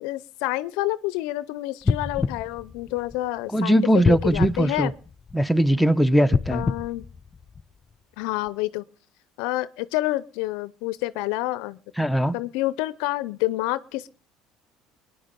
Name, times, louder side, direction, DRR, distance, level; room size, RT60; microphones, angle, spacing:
voice 1, 0.0-3.8 4.1-4.9 6.5-7.0 8.2-8.8 9.4-11.8 12.3-14.1, left 17 dB, 75° left, 0.7 m, -28 dB
sound 1, 1.8-3.5 4.0-5.6 6.2-7.9 8.5-8.6, left 4 dB, 30° left, 0.8 m, -27 dB
voice 2, 3.5-4.9 5.3-6.6 12.0-12.3, right 1 dB, 5° left, 1.0 m, -20 dB
22.0 x 10.0 x 5.2 m
supercardioid pair, 80°, 0 cm